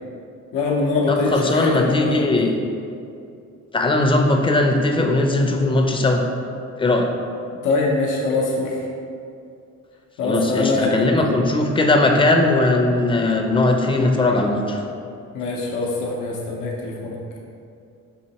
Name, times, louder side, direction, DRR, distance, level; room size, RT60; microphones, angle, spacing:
voice 1, 0.5-2.5 7.6-8.8 10.2-11.0 15.3-17.2, left 3 dB, 90° left, -2 dB, 0.6 m, -23 dB
voice 2, 1.1-2.5 3.7-6.2 6.8-7.1 10.2-14.8, left 2 dB, 15° left, 2 dB, 0.5 m, -19 dB
5.6 x 2.8 x 2.8 m, 2.5 s
cardioid pair, 90°, 30 cm